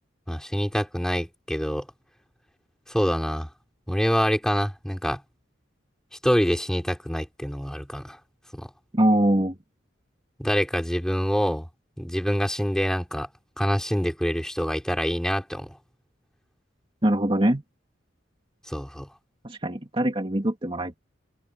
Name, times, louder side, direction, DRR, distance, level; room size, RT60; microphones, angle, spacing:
voice 1, 0.3-1.9 2.9-3.5 3.9-5.2 6.2-8.2 8.5-8.7 10.4-11.7 12.0-13.3 13.6-15.8 18.7-19.1, equal, 5° left, 5.0 m, -26 dB
voice 2, 8.9-9.6 17.0-17.6 19.4-21.0, right 1 dB, 30° right, 2.7 m, -23 dB
head